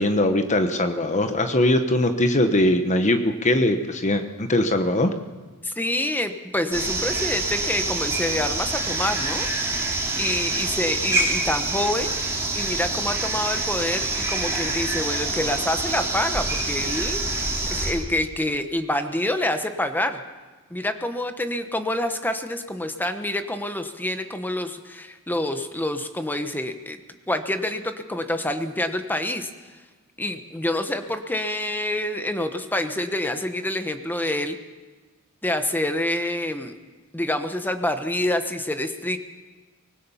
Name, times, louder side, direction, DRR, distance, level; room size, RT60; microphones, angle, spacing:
voice 1, 0.0-5.1, left 1 dB, 35° left, 7 dB, 1.1 m, -21 dB
voice 2, 5.6-9.5 10.2-12.1 12.6-20.2 20.7-27.0 27.3-29.5 30.2-34.6 35.4-36.7 37.1-39.2, left 1 dB, 10° left, 8 dB, 1.1 m, -27 dB
sound 1, 6.7-17.9, right 2 dB, 10° right, 3.8 m, -26 dB
24.0 x 20.0 x 5.7 m, 1.4 s
head